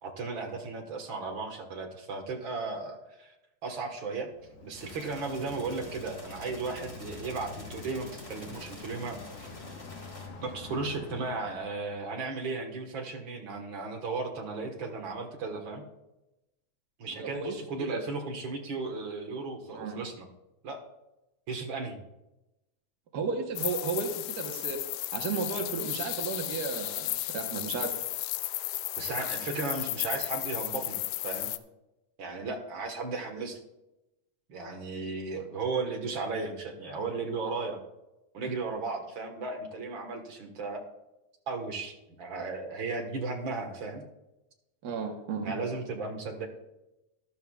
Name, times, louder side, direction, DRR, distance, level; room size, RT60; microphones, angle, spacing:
voice 1, 0.0-3.3 3.6-4.3 4.6-9.5 10.4-15.8 17.0-20.3 20.6-20.8 21.5-22.0 29.0-31.5 32.2-33.6 34.5-37.8 38.3-40.8 41.5-44.0 45.4-46.5, right 3 dB, 50° right, 3 dB, 1.8 m, -35 dB
Bicycle, 4.2-11.7, left 4 dB, 55° left, 2.0 m, -46 dB
sound 1, 4.8-10.3, left 1 dB, 20° left, 0.8 m, -49 dB
voice 2, 17.1-18.0 19.7-20.0 23.1-24.8 25.1-27.9 44.8-45.5, right 5 dB, 80° right, 3 dB, 0.9 m, -34 dB
sound 2, 23.6-31.6, left 16 dB, 80° left, 2.0 m, -34 dB
13.5 x 12.0 x 2.4 m, 0.94 s
omnidirectional pair, 3.6 m